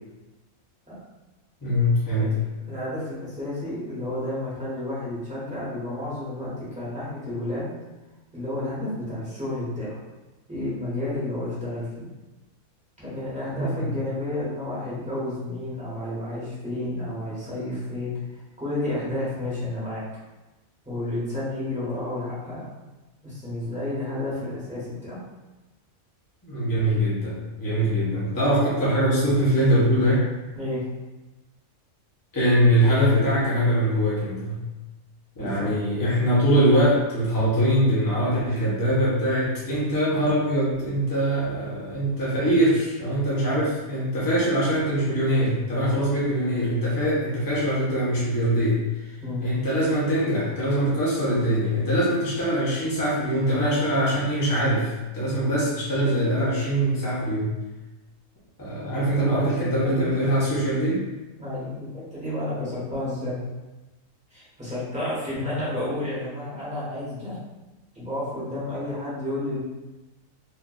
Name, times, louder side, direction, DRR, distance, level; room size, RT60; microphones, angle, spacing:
voice 1, 1.6-2.3 13.5-13.8 26.4-30.2 32.3-34.6 35.4-57.5 58.6-61.0, equal, 20° left, -8 dB, 0.8 m, -23 dB
voice 2, 2.5-7.7 8.3-10.0 10.5-12.1 13.0-20.0 20.8-22.7 23.2-25.2 30.5-30.8 35.4-35.7 49.2-49.4 59.0-60.1 61.4-63.4 64.3-67.4 67.9-69.6, left 1 dB, 5° right, -9 dB, 1.3 m, -31 dB
4.4 x 2.6 x 2.5 m, 1.1 s
omnidirectional pair, 1.4 m